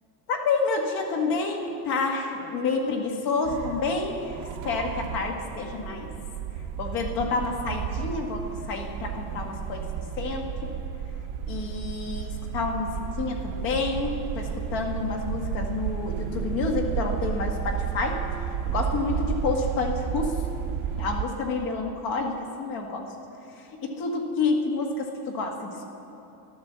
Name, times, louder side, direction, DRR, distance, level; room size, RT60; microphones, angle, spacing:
voice 1, 0.3-4.4 4.6-6.1 6.8-10.7 11.5-18.3 18.7-20.4 21.0-23.1 23.8-25.9, left 4 dB, 55° left, 2 dB, 1.9 m, -29 dB
sound 1, 3.4-21.3, right 8 dB, 50° right, 0.8 m, -32 dB
12.5 x 12.5 x 7.5 m, 2.8 s
cardioid pair, 175°, 42 cm